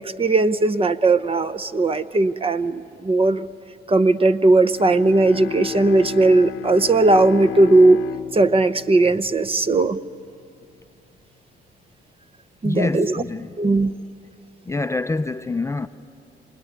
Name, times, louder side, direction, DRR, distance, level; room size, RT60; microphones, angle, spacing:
voice 1, 0.0-3.5 3.9-8.0 8.3-10.0 12.6-13.2 13.6-13.9, right 2 dB, 30° right, 0.8 m, -18 dB
Bowed string instrument, 4.7-10.0, left 10 dB, 85° left, 0.9 m, -33 dB
voice 2, 12.6-13.7 14.7-15.9, left 3 dB, 15° left, 0.5 m, -26 dB
27.0 x 19.5 x 9.4 m
cardioid pair, 90°, 20 cm